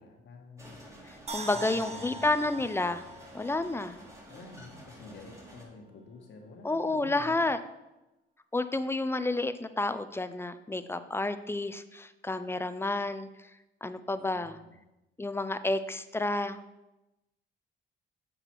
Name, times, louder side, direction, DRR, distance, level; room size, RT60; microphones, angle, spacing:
voice 1, 0.0-0.9 1.5-2.7 4.3-7.5 14.2-14.8, left 3 dB, 65° left, 1 dB, 1.4 m, -49 dB
sound 1, 0.6-5.7, equal, 15° right, 1.9 m, -50 dB
voice 2, 1.0-3.0 3.3-4.0 6.6-7.6 8.5-13.5 13.8-14.6 15.2-16.6, left 2 dB, 10° left, 12 dB, 0.4 m, -30 dB
sound 2, 1.3-4.5 4.8-4.9, right 1 dB, 30° right, 1.0 m, -42 dB
7.9 x 5.0 x 4.5 m, 0.98 s
cardioid pair, 90°, 20 cm